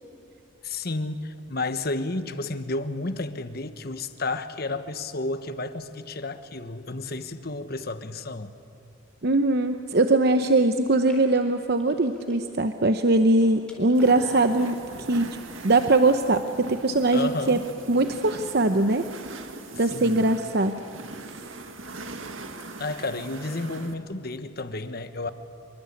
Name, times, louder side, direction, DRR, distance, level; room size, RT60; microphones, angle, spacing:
voice 1, 0.6-8.5 17.1-17.7 19.8-20.2 22.8-25.3, left 2 dB, 50° left, 10 dB, 1.3 m, -31 dB
voice 2, 9.2-14.8 15.1-15.3 15.6-17.6 17.9-19.0 19.8-20.8, right 2 dB, 55° right, 8 dB, 0.8 m, -21 dB
sound 1, 9.9-10.3 10.9-12.8 13.1-14.7, left 1 dB, 5° left, 4.2 m, -45 dB
sound 2, 13.9-23.9, right 2 dB, 80° right, 1.9 m, -40 dB
26.5 x 23.0 x 8.5 m, 2.5 s
head